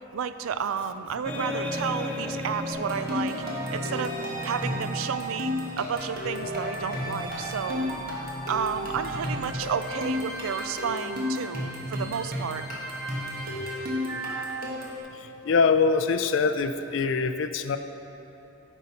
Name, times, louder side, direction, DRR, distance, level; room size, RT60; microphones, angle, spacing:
voice 1, 0.1-7.9 8.5-12.6 13.9-14.7, right 7 dB, 75° right, 11 dB, 0.4 m, -32 dB
sound 1, 1.2-10.1, left 1 dB, 5° left, 0.5 m, -37 dB
sound 2, 2.7-15.0, equal, 45° right, 1.4 m, -33 dB
voice 2, 15.1-17.8, left 5 dB, 65° left, 10 dB, 0.4 m, -24 dB
10.5 x 5.4 x 4.2 m, 3.0 s
head